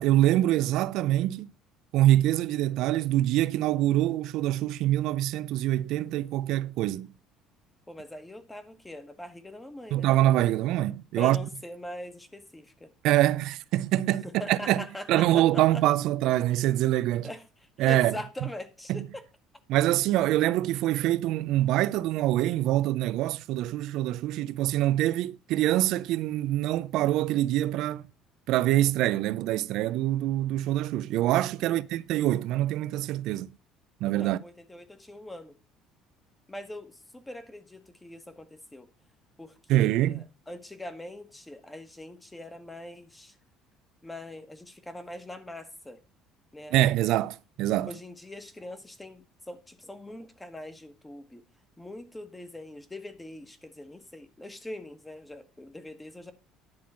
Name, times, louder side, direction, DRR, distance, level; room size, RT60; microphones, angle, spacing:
voice 1, 0.0-1.5 1.9-7.1 9.9-11.4 13.0-14.8 15.1-17.3 17.8-18.1 18.9-19.1 19.7-28.0 28.5-33.5 34.0-34.4 39.7-40.3 46.7-47.9, right 14 dB, 70° right, 0.4 m, -25 dB
voice 2, 7.9-10.1 11.2-12.9 14.0-15.8 17.2-19.2 31.6-31.8 34.0-35.5 36.5-38.9 39.4-43.4 44.0-46.0 46.5-46.7 47.8-51.4 51.8-56.3, left 1 dB, 10° left, 1.3 m, -42 dB
10.5 x 3.8 x 7.3 m
cardioid pair, 110°, 0 cm